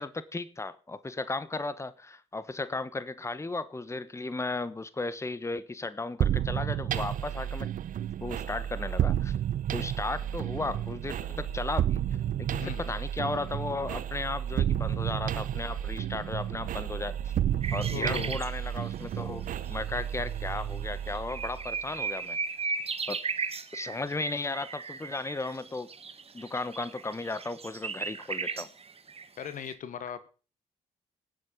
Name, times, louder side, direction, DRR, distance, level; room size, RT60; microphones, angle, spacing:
voice 1, 0.0-7.7 8.2-9.3 9.7-12.0 12.4-17.3 17.7-22.4 23.1-23.2 23.7-25.9 26.3-28.7, left 3 dB, 20° left, 15 dB, 1.1 m, -35 dB
sound 1, 6.2-21.8, right 10 dB, 60° right, 0.9 m, -32 dB
sound 2, 10.2-12.8 14.5-18.1 19.2-20.8, right 21 dB, 80° right, 0.5 m, -42 dB
voice 2, 12.6-12.9 17.9-18.4 29.4-30.3, left 8 dB, 60° left, 14 dB, 1.3 m, -38 dB
sound 3, 17.6-18.5 20.0-20.1 20.6-20.7 20.9-29.7, right 5 dB, 40° right, 1.6 m, -36 dB
18.5 x 7.7 x 5.2 m, 0.37 s
hypercardioid pair, 50°, 16 cm